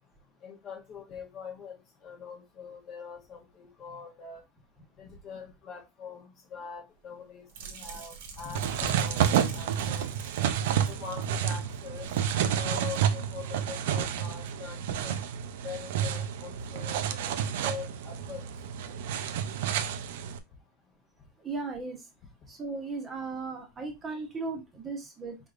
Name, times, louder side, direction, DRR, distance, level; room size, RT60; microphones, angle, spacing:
voice 1, 0.4-4.4 5.0-10.1 10.9-12.1 12.6-15.2 15.6-17.3 17.6-18.4, left 6 dB, 25° left, 0.7 m, -43 dB
sound 1, 7.5-12.4 12.6-13.0 13.4-13.6, right 6 dB, 85° right, 1.2 m, -46 dB
sound 2, 8.5-20.4, right 9 dB, 65° right, 0.5 m, -30 dB
voice 2, 21.4-22.0 22.5-25.4, right 3 dB, 15° right, 0.8 m, -36 dB
4.5 x 3.5 x 2.4 m
supercardioid pair, 180°, 0 cm